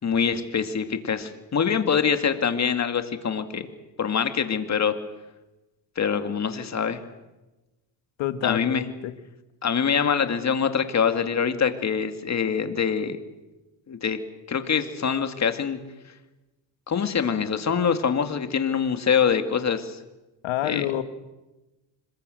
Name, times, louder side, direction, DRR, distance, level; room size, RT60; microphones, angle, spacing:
voice 1, 0.0-3.7 4.0-4.9 6.0-7.0 8.4-8.8 9.6-13.2 13.9-14.2 14.5-15.8 16.9-20.0 20.6-20.8, left 7 dB, 35° left, 8 dB, 2.3 m, -24 dB
voice 2, 8.2-9.1 20.4-21.0, left 13 dB, 75° left, 10 dB, 1.9 m, -28 dB
26.0 x 21.5 x 7.9 m, 1.1 s
cardioid pair, 115°, 46 cm